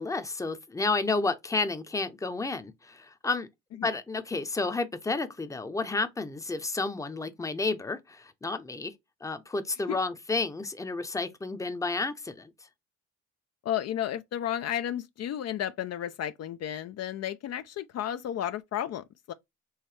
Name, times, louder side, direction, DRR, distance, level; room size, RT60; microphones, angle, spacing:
voice 1, 0.0-3.5 3.8-8.9 9.2-12.5, left 3 dB, 10° left, 0.6 m, -31 dB
voice 2, 13.6-19.3, left 11 dB, 55° left, 0.4 m, -33 dB
4.7 x 3.1 x 3.2 m
cardioid pair, 90°, 30 cm